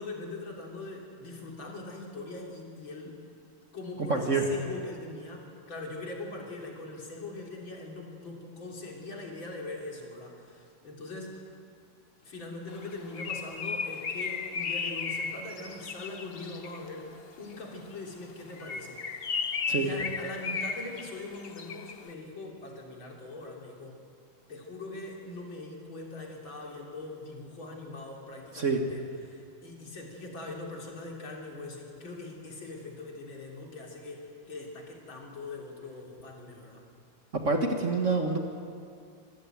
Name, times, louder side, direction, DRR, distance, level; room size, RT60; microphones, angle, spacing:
voice 1, 0.0-3.2 3.7-11.4 12.2-17.1 17.4-19.4 19.8-24.0 24.5-36.8, left 2 dB, 70° left, -1 dB, 4.1 m, -42 dB
voice 2, 4.1-4.5 19.7-19.9 28.5-28.8 37.4-38.4, right 4 dB, 40° right, 3 dB, 1.8 m, -26 dB
Bird, 12.8-16.9 18.5-22.0, left 5 dB, 50° left, 0.7 m, -35 dB
25.5 x 14.5 x 9.1 m, 2.3 s
omnidirectional pair, 2.2 m